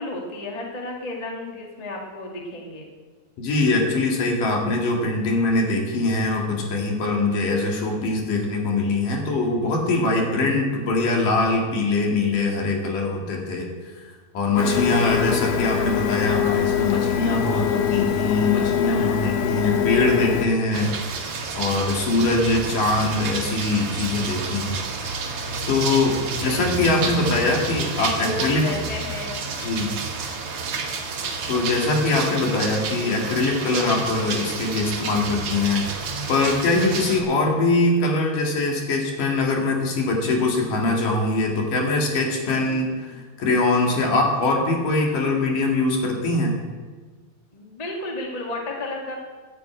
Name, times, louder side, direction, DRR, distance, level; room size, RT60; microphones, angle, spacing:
voice 1, 0.0-2.9 22.2-22.3 26.3-26.7 28.1-29.4 37.4-37.5 42.5-42.8 43.1-43.2 47.5-49.2, left 2 dB, 20° left, -1 dB, 0.9 m, -33 dB
voice 2, 3.4-13.7 14.3-21.0 21.5-24.8 25.7-28.7 29.6-29.9 31.5-46.5, left 2 dB, 65° left, 0 dB, 3.6 m, -22 dB
Printer, 14.6-20.5, left 9 dB, 85° left, 1.4 m, -23 dB
sound 1, 20.7-37.2, right 4 dB, 55° right, 1.6 m, -30 dB
11.0 x 9.4 x 8.7 m, 1.4 s
omnidirectional pair, 4.2 m